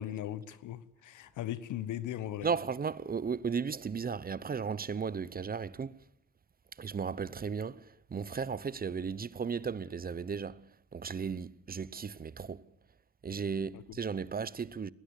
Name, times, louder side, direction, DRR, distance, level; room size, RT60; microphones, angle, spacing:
voice 1, 0.0-2.5 13.7-14.0, left 12 dB, 80° left, 1.3 m, -38 dB
voice 2, 2.4-6.0 6.8-12.6 13.2-14.9, right 6 dB, 30° right, 0.8 m, -35 dB
21.0 x 18.5 x 8.3 m
cardioid pair, 90°, 30 cm